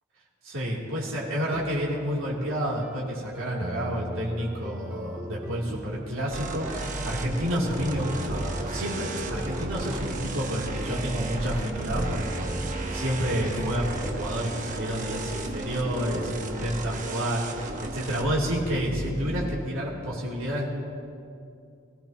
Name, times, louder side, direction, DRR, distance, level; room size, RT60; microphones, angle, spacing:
voice 1, 0.4-20.7, equal, 90° right, -5 dB, 3.2 m, -30 dB
sound 1, 1.5-18.2, right 1 dB, 5° right, 0.4 m, -39 dB
sound 2, 6.3-19.5, right 2 dB, 40° right, 1.2 m, -34 dB
23.5 x 15.5 x 3.0 m, 2.4 s
head